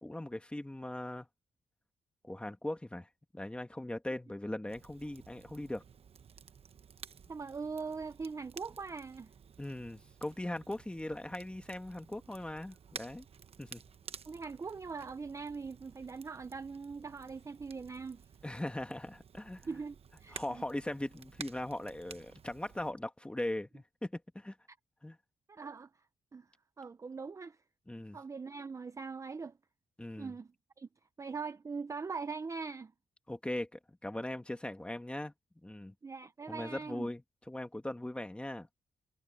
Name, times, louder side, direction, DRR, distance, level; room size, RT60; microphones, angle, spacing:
voice 1, 0.0-1.3 2.2-3.1 3.3-5.8 9.6-13.2 13.6-13.8 18.4-19.6 20.3-24.5 25.0-25.2 27.9-28.2 30.0-30.3 33.3-35.3 35.6-35.9 36.5-38.7, left 1 dB, 5° left, 1.6 m, -40 dB
Crackle, 4.7-22.9, right 7 dB, 45° right, 1.0 m, -53 dB
voice 2, 7.3-9.3 14.3-18.3 19.6-20.6 25.5-25.9 26.3-27.6 28.1-29.6 30.2-30.9 31.2-32.9 36.0-37.1, right 4 dB, 20° right, 0.5 m, -42 dB
wide cardioid pair, 150°, 14 cm